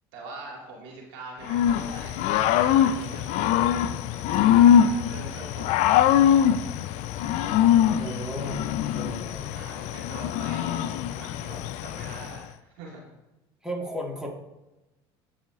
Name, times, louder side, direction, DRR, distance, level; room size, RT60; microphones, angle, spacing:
voice 1, 0.1-3.4 4.5-5.8 7.8-8.2 9.5-13.1, right 2 dB, 80° right, -3 dB, 2.2 m, -43 dB
Growling / Cricket, 1.5-12.4, left 9 dB, 65° left, 0.5 m, -23 dB
voice 2, 8.0-8.6 8.9-9.5 10.6-10.7 13.6-14.3, equal, 5° right, -1 dB, 1.8 m, -34 dB
14.0 x 4.9 x 2.6 m, 1.0 s
hypercardioid pair, 80°, 13 cm